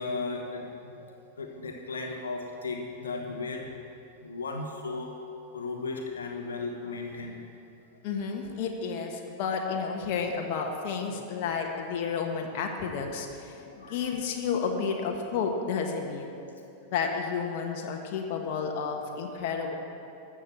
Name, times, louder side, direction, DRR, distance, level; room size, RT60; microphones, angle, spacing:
voice 1, 0.0-3.8 4.2-5.1 5.5-7.5 11.1-11.2 13.5-14.2 16.3-16.5, left 3 dB, 70° left, 2 dB, 1.3 m, -36 dB
voice 2, 8.0-16.3 16.9-19.8, left 5 dB, 45° left, 2 dB, 1.3 m, -31 dB
13.5 x 7.3 x 7.4 m, 2.7 s
figure-of-eight pair, 90°, 0 cm